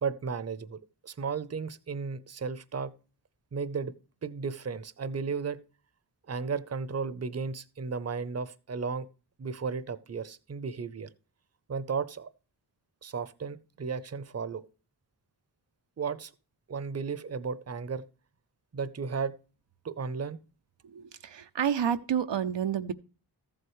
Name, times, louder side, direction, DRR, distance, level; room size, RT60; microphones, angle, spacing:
voice 1, 0.0-2.9 3.5-3.9 4.2-5.6 6.3-9.1 9.4-11.1 11.7-12.3 13.0-14.7 16.0-16.3 16.7-18.0 18.7-19.3 19.8-20.4, right 5 dB, 35° right, 0.7 m, -34 dB
voice 2, 20.8-22.9, right 8 dB, 90° right, 0.7 m, -29 dB
14.0 x 7.9 x 3.1 m
wide cardioid pair, 65°, 42 cm